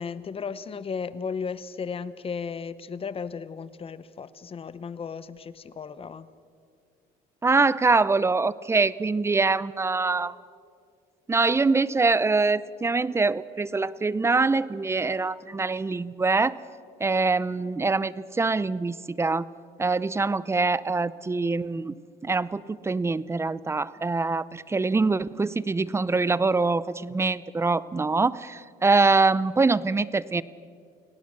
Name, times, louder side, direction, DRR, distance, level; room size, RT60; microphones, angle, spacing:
voice 1, 0.0-6.3, left 6 dB, 35° left, 15 dB, 1.0 m, -35 dB
voice 2, 7.4-10.3 11.3-16.6 17.0-19.5 19.8-21.9 22.2-30.4, right 3 dB, 15° right, 18 dB, 0.6 m, -24 dB
29.5 x 17.5 x 6.5 m, 2.3 s
cardioid pair, 110°, 17 cm